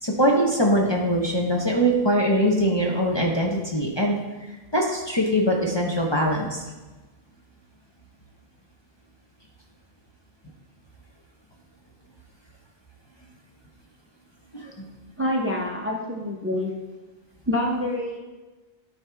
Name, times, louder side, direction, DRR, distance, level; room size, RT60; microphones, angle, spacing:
voice 1, 0.0-4.2 4.7-6.6 14.5-14.7, equal, 25° left, -1 dB, 0.9 m, -22 dB
voice 2, 15.2-16.7 17.5-18.2, left 1 dB, 15° right, -1 dB, 0.8 m, -26 dB
12.5 x 4.5 x 3.4 m, 1.2 s
omnidirectional pair, 1.0 m